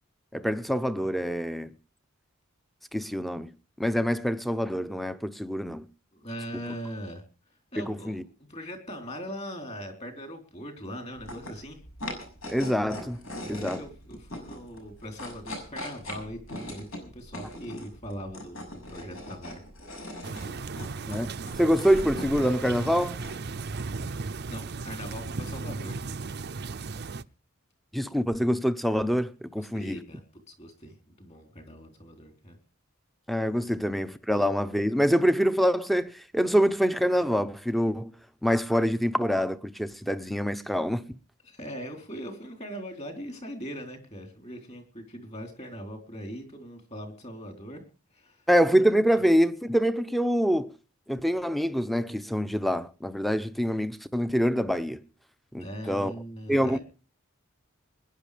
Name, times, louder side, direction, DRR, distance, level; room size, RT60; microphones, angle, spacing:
voice 1, 0.3-1.8 2.9-3.5 3.8-5.9 7.8-8.2 12.5-13.8 21.0-23.2 27.9-30.0 33.3-38.1 38.4-41.2 48.5-50.7 51.1-55.0 55.5-56.1 56.5-56.8, equal, ahead, 0.8 m, -25 dB
voice 2, 6.1-7.2 7.7-8.1 8.5-11.8 13.4-19.6 24.5-26.0 29.6-32.6 33.7-33.8 41.5-47.8 48.1-48.4 55.6-56.8, equal, 30° left, 3.9 m, -40 dB
sound 1, 11.1-26.5, left 1 dB, 75° left, 6.6 m, -42 dB
sound 2, 20.2-27.2, right 4 dB, 55° right, 0.6 m, -36 dB
21.0 x 10.5 x 5.1 m
head